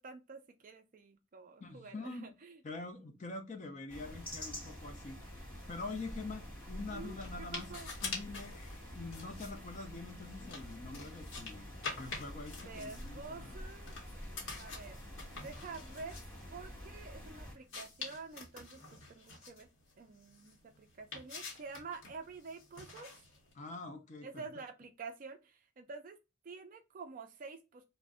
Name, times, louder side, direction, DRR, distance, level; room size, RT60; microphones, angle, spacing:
voice 1, 0.0-2.6 6.9-7.9 12.6-13.9 14.6-15.0 15.3-16.2 16.5-19.7 20.0-23.1 24.2-26.2 26.4-27.8, right 4 dB, 40° right, 0.3 m, -48 dB
voice 2, 1.6-2.3 2.6-5.2 5.7-7.7 8.0-13.6 23.6-24.4, left 3 dB, 35° left, 0.5 m, -45 dB
sound 1, 3.9-17.6, equal, 5° left, 1.2 m, -48 dB
sound 2, 5.5-23.5, left 4 dB, 60° left, 0.9 m, -48 dB
2.5 x 2.1 x 3.5 m
head